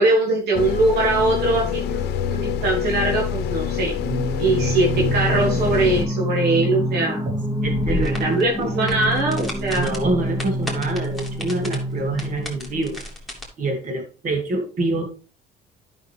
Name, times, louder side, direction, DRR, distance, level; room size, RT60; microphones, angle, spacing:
voice 1, 0.0-4.0 4.4-7.2 7.9-9.9, right 2 dB, 70° right, -1 dB, 1.8 m, -21 dB
sound 1, 0.5-6.1, left 8 dB, 75° left, 0.8 m, -26 dB
Singing, 4.0-12.9, equal, 15° right, 1.3 m, -27 dB
sound 2, 7.6-13.4, left 2 dB, ahead, 2.5 m, -33 dB
voice 2, 7.6-8.2 9.7-13.0 13.6-15.1, right 2 dB, 50° right, 3 dB, 2.4 m, -26 dB
11.0 x 5.7 x 3.4 m, 0.35 s
cardioid pair, 110°, 17 cm